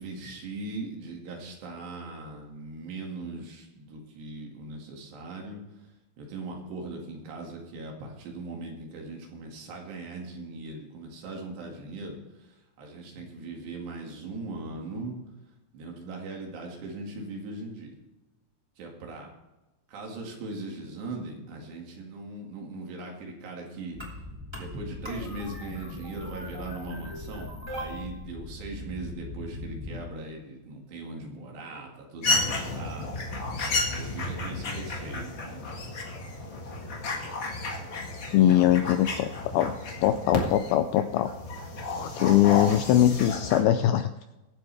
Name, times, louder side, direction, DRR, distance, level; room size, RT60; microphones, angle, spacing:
voice 1, 0.0-5.6 6.2-15.1 15.7-18.0 18.8-19.3 19.9-24.0 24.5-33.5 33.9-35.8, right 2 dB, 80° right, 0 dB, 4.3 m, -39 dB
sound 1, 23.9-30.0, left 1 dB, 10° right, 2.2 m, -39 dB
sound 2, 32.2-43.6, left 2 dB, 50° left, 1.4 m, -32 dB
voice 2, 38.3-39.7 40.0-41.3 41.9-44.1, left 12 dB, 85° left, 9 dB, 2.2 m, -22 dB
22.0 x 8.0 x 3.5 m, 1.0 s
omnidirectional pair, 4.8 m